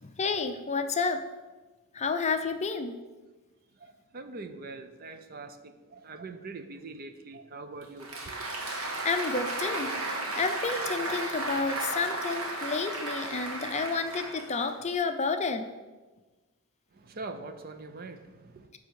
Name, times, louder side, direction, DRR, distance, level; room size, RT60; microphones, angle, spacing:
voice 1, 0.0-1.2 1.9-2.9 8.7-9.9 10.4-15.6, left 4 dB, 30° left, 8 dB, 0.5 m, -30 dB
voice 2, 3.8-8.5 17.0-18.7, right 3 dB, 45° right, 8 dB, 0.6 m, -43 dB
Applause, 7.8-14.9, right 2 dB, 70° right, 1.3 m, -34 dB
10.5 x 3.5 x 6.4 m, 1.2 s
head